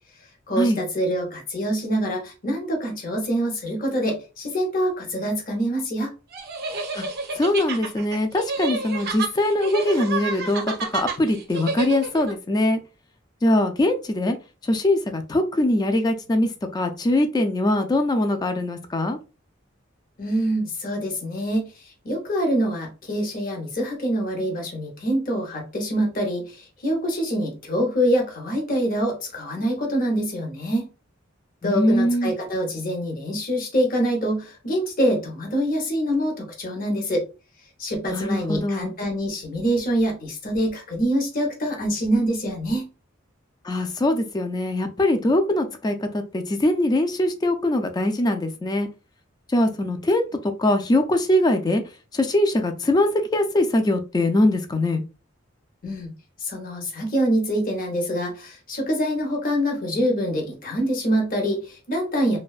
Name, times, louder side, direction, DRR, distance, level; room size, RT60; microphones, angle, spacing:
voice 1, 0.5-6.1 20.2-21.7 22.0-30.9 31.6-37.2 37.8-42.9 55.8-56.1 56.4-62.4, equal, 45° left, 2 dB, 0.7 m, -25 dB
sound 1, 6.3-12.3, right 3 dB, 50° right, 0.6 m, -30 dB
voice 2, 7.4-12.8 13.4-14.4 14.7-19.2 31.6-32.3 38.1-38.9 43.6-48.9 49.5-51.8 52.1-55.0, left 1 dB, 20° left, 6 dB, 0.3 m, -22 dB
2.5 x 2.2 x 2.3 m, 0.32 s
head